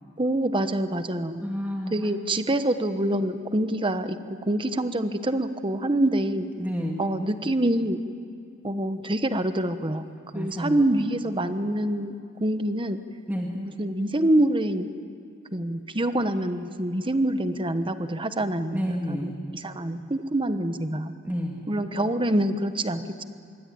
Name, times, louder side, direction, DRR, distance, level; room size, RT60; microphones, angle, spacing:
voice 1, 0.2-1.4 1.9-4.2 4.5-6.5 7.0-8.0 8.6-13.0 13.5-14.9 15.5-21.1 21.7-23.2, right 1 dB, 25° right, 10 dB, 1.2 m, -26 dB
voice 2, 1.4-1.9 6.6-7.0 10.3-10.8 13.3-13.5 18.7-19.3 21.2-21.6, equal, 10° right, -1 dB, 2.1 m, -29 dB
25.5 x 23.0 x 9.3 m, 2.4 s
head